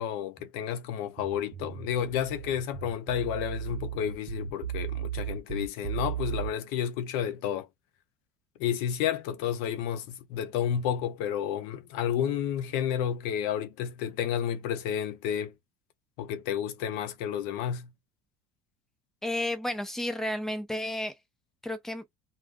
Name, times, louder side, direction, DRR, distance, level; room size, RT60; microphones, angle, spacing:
voice 1, 0.0-7.7 8.6-15.5 16.2-17.9, left 9 dB, 80° left, 0.6 m, -31 dB
sound 1, 1.2-6.5, right 9 dB, 80° right, 0.5 m, -35 dB
voice 2, 19.2-21.1 21.6-22.0, left 1 dB, 5° left, 0.5 m, -32 dB
2.4 x 2.1 x 3.5 m
cardioid pair, 155°, 14 cm